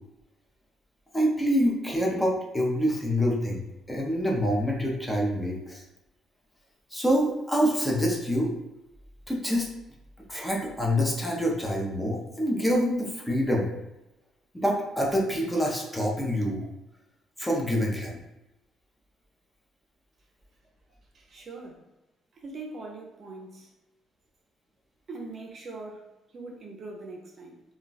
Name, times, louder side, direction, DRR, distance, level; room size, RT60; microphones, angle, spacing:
voice 1, 1.1-5.8 6.9-8.5 9.3-9.7 10.3-13.7 14.5-16.7 17.4-18.2, equal, 10° left, -2 dB, 0.6 m, -26 dB
voice 2, 21.1-21.8 22.3-23.7 25.1-27.6, right 3 dB, 40° right, 0 dB, 0.5 m, -42 dB
2.3 x 2.2 x 3.9 m, 0.95 s
cardioid pair, 130°, 0 cm